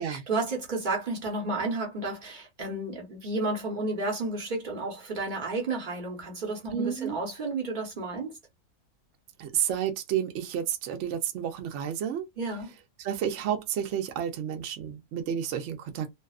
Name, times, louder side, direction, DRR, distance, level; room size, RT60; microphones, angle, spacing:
voice 1, 0.0-8.4 12.4-12.7, right 2 dB, 35° right, 1.0 m, -32 dB
voice 2, 6.7-7.2 9.4-12.3 13.0-16.1, right 9 dB, 65° right, 0.8 m, -31 dB
2.6 x 2.3 x 2.3 m
omnidirectional pair, 1.6 m